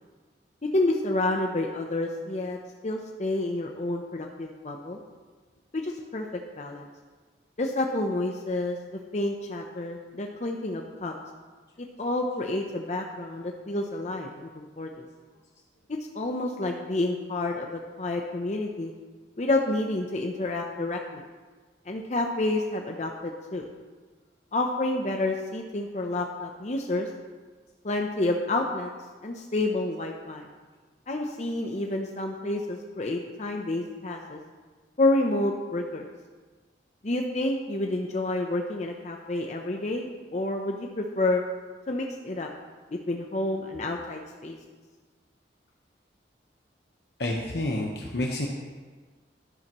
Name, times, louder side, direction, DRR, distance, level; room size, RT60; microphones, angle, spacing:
voice 1, 0.6-2.6 2.8-5.0 5.7-6.9 7.6-11.1 11.8-14.9 15.9-18.9 19.4-21.2 21.9-23.6 24.5-27.1 27.8-28.9 29.2-30.5 31.1-34.4 35.0-36.1 37.0-41.4 41.9-42.5 42.9-44.6, left 2 dB, 40° left, 2 dB, 0.7 m, -29 dB
voice 2, 47.2-48.5, left 1 dB, 70° left, -1 dB, 1.0 m, -29 dB
11.5 x 10.5 x 3.0 m, 1.4 s
head